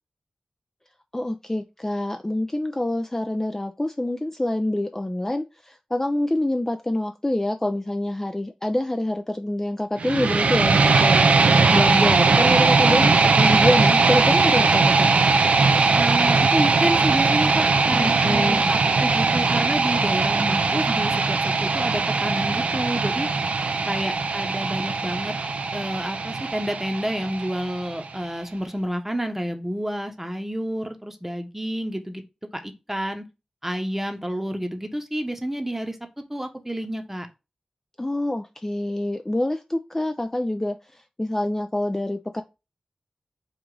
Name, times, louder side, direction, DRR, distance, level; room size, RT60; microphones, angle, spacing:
voice 1, 1.1-11.3 11.7-15.1 17.9-18.7 38.0-40.8 41.2-42.4, left 1 dB, 20° left, 0.4 m, -26 dB
sound 1, 10.0-28.0, right 4 dB, 90° right, 0.4 m, -20 dB
voice 2, 12.7-13.1 16.0-23.3 23.9-25.3 25.7-32.2 32.5-33.3 33.6-36.0 36.3-37.3, equal, 15° right, 0.9 m, -29 dB
4.8 x 2.5 x 3.7 m
cardioid pair, 50°, 2 cm